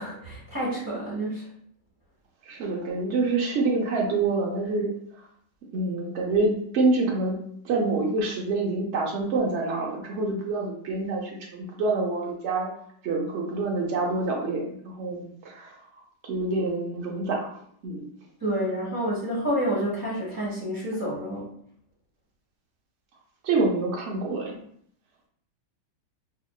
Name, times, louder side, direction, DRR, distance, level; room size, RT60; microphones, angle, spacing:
voice 1, 0.0-1.5 18.4-21.5, equal, 15° right, -7 dB, 1.3 m, -29 dB
voice 2, 2.4-4.9 5.7-7.4 7.6-12.7 13.0-15.8 16.2-17.5 17.8-18.0 23.4-24.6, right 3 dB, 55° right, 0 dB, 0.8 m, -26 dB
4.2 x 2.9 x 2.3 m, 0.66 s
omnidirectional pair, 1.9 m